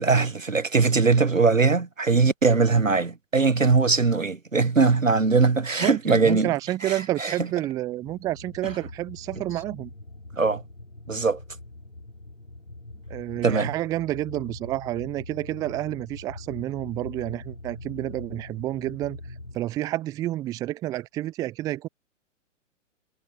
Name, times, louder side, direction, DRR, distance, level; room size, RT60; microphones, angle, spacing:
voice 1, 0.0-6.5 6.8-7.3 10.4-10.6 11.1-11.4 13.4-13.7, right 4 dB, 85° right, 1.3 m, -21 dB
voice 2, 5.8-9.9 13.1-19.2 19.5-21.9, right 15 dB, 10° right, 0.6 m, -29 dB
sound 1, 7.9-19.6, left 2 dB, 80° left, 3.4 m, -42 dB
figure-of-eight pair, 115°, 38 cm